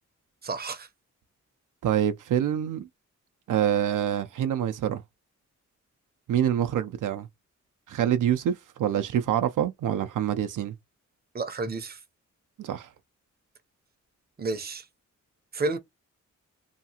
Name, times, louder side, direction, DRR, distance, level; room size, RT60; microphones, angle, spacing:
voice 1, 0.4-0.9 11.3-12.0 14.4-14.9 15.5-15.8, right 3 dB, 30° right, 0.6 m, -30 dB
voice 2, 1.8-2.9 3.5-5.0 6.3-7.3 7.9-10.7 12.6-12.9, right 10 dB, 80° right, 0.5 m, -26 dB
2.8 x 2.4 x 2.7 m
wide cardioid pair, 95°, 31 cm